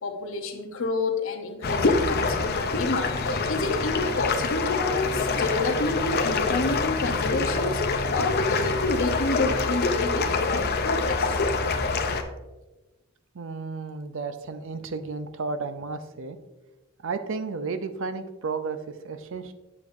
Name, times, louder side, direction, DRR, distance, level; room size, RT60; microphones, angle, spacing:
voice 1, 0.0-11.4, left 2 dB, 65° left, 4 dB, 1.0 m, -29 dB
sound 1, 1.6-12.2, left 4 dB, 50° left, 0.6 m, -25 dB
voice 2, 13.3-16.4 17.0-19.5, right 4 dB, 65° right, 9 dB, 0.6 m, -33 dB
8.5 x 6.5 x 2.6 m, 1.1 s
head